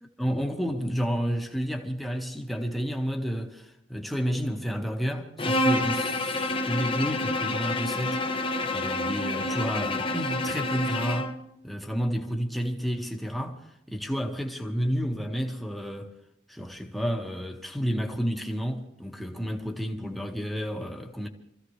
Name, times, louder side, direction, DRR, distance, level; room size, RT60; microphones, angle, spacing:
voice 1, 0.2-11.4 11.6-13.6 13.9-16.1 16.5-21.3, equal, ahead, 1.7 m, -31 dB
Bowed string instrument, 5.4-11.4, left 2 dB, 30° left, 1.1 m, -28 dB
26.5 x 15.5 x 3.3 m
head